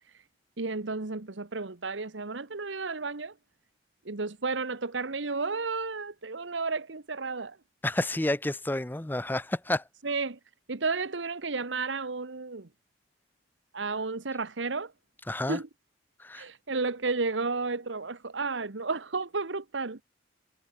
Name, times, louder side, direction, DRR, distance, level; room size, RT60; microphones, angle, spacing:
voice 1, 0.6-3.3 4.0-7.6 10.0-10.4 10.7-12.7 13.7-14.9 15.5-15.7 16.3-20.0, right 4 dB, 85° right, 1.3 m, -32 dB
voice 2, 7.8-9.8 15.3-15.6 16.2-16.4, left 1 dB, 10° left, 0.6 m, -30 dB
head